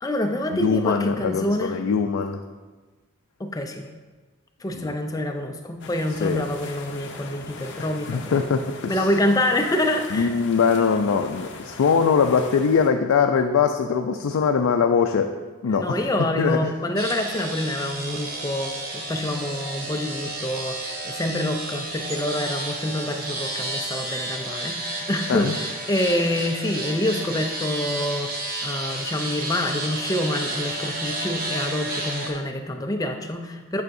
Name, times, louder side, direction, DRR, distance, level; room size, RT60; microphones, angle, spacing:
voice 1, 0.0-1.8 3.4-3.9 4.6-8.4 8.8-10.3 15.7-33.8, left 1 dB, 15° left, 5 dB, 0.4 m, -26 dB
voice 2, 0.6-2.4 4.7-5.0 6.2-6.5 7.8-9.1 10.1-15.3 15.6-16.1 16.4-16.7 25.3-25.6, left 6 dB, 80° left, 4 dB, 0.4 m, -22 dB
sound 1, 5.8-12.9, left 3 dB, 55° left, 0.7 m, -40 dB
sound 2, 17.0-32.3, right 1 dB, 45° right, 0.9 m, -31 dB
9.2 x 5.6 x 2.6 m, 1.3 s
head